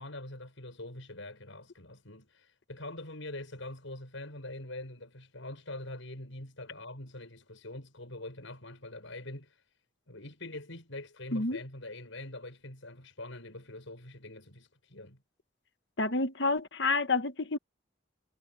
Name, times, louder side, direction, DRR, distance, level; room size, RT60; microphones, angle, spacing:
voice 1, 0.0-9.6 10.1-15.2, left 2 dB, 80° left, 6.3 m, -44 dB
voice 2, 16.0-17.6, left 3 dB, 60° left, 1.2 m, -29 dB
head